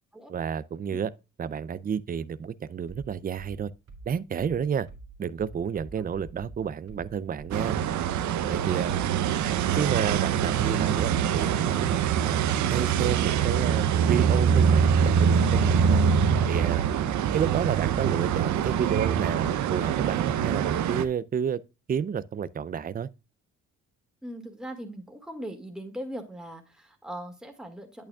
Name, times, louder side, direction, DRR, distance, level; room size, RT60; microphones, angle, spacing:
voice 1, 0.3-1.1 1.4-3.7 4.1-4.9 5.2-7.8 8.4-8.9 9.7-12.4 12.7-16.0 16.5-16.9 17.3-21.6 21.9-23.1, right 7 dB, 30° right, 0.5 m, -30 dB
sound 1, 2.9-10.7, right 3 dB, 55° right, 2.4 m, -46 dB
sound 2, 7.5-21.0, right 8 dB, 70° right, 0.7 m, -24 dB
voice 2, 24.2-28.1, equal, ahead, 2.0 m, -40 dB
8.9 x 8.5 x 2.3 m
cardioid pair, 90°, 30 cm